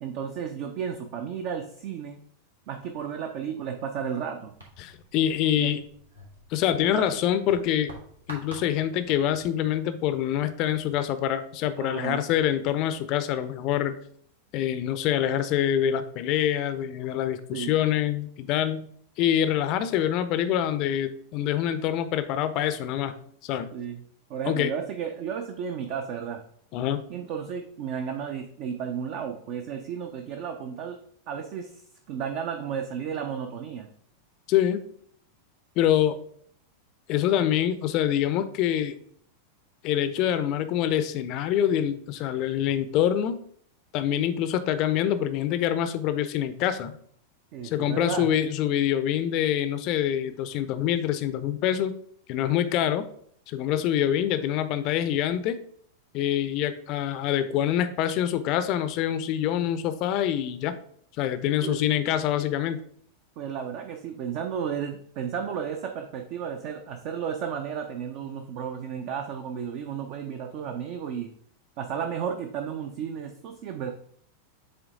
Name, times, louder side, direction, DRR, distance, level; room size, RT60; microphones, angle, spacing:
voice 1, 0.0-2.2 2.7-4.5 5.6-5.8 6.8-7.1 11.8-12.2 17.5-17.7 23.7-24.0 24.3-26.4 27.1-31.0 31.3-33.9 47.5-48.3 61.6-61.9 63.4-71.3 71.8-73.9, right 7 dB, 45° right, 5 dB, 0.6 m, -33 dB
sound 1, 4.5-11.0, right 1 dB, 80° right, 1.8 m, -49 dB
voice 2, 4.8-5.8 6.5-7.9 8.3-14.0 14.5-18.9 19.2-23.1 23.4-23.7 24.5-24.7 26.7-27.0 34.5-34.8 35.8-36.2 37.1-39.0 39.8-43.4 43.9-47.0 47.6-52.0 52.3-53.0 53.5-55.6 56.1-60.8 61.2-62.8, left 11 dB, 40° left, 12 dB, 0.5 m, -25 dB
7.9 x 3.4 x 3.6 m, 0.62 s
figure-of-eight pair, 90°, 0 cm